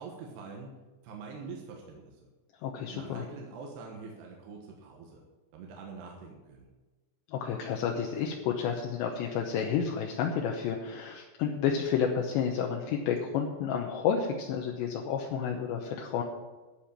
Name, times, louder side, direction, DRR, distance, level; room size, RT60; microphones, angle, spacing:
voice 1, 0.0-2.2 2.9-5.2 5.5-6.7, right 4 dB, 70° right, 0 dB, 3.2 m, -45 dB
voice 2, 2.6-3.2 7.3-16.2, left 7 dB, 75° left, 1 dB, 3.0 m, -30 dB
13.0 x 5.6 x 8.8 m, 1.2 s
omnidirectional pair, 5.3 m